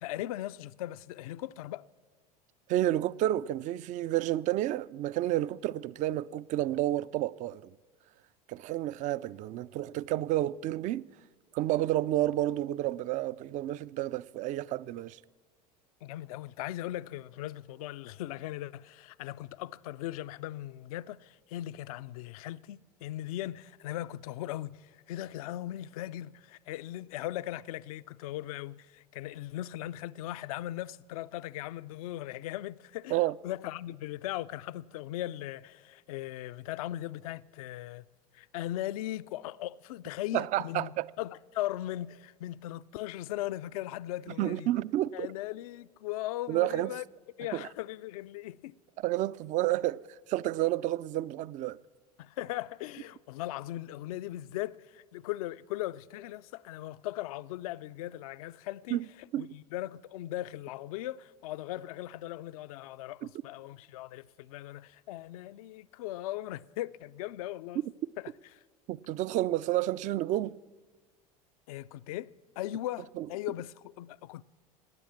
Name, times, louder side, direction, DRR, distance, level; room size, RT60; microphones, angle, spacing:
voice 1, 0.0-1.8 16.0-33.2 33.4-38.0 38.3-44.7 45.1-47.0 47.4-48.8 52.2-59.0 59.4-67.8 68.2-68.3 71.7-74.4, left 14 dB, 65° left, 0.4 m, -38 dB
voice 2, 2.7-7.7 8.5-11.1 11.5-15.2 33.1-33.3 40.3-41.1 44.4-45.3 46.5-46.9 47.5-47.7 49.0-51.8 58.9-59.0 59.3-59.5 68.9-70.6 73.2-73.3, right 14 dB, 40° right, 0.4 m, -30 dB
20.0 x 8.7 x 7.2 m
hypercardioid pair, 80°, 20 cm